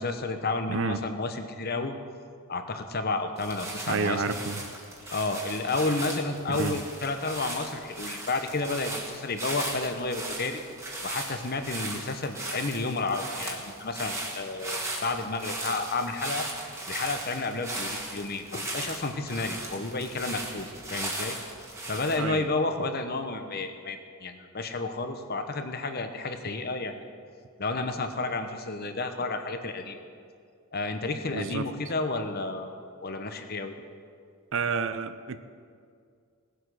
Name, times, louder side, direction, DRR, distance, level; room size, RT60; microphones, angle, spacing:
voice 1, 0.0-1.9 2.5-4.4 5.1-10.6 11.0-16.5 16.9-21.4 21.9-27.0 27.6-30.0 30.7-32.7 33.0-33.8, left 3 dB, 45° left, 7 dB, 0.9 m, -31 dB
sound 1, 3.4-22.2, right 1 dB, 15° right, 1.7 m, -37 dB
voice 2, 3.9-4.6 6.5-6.8 22.2-22.5 31.3-31.6 34.5-35.4, right 4 dB, 60° right, 11 dB, 0.6 m, -29 dB
18.0 x 7.8 x 6.4 m, 2.2 s
head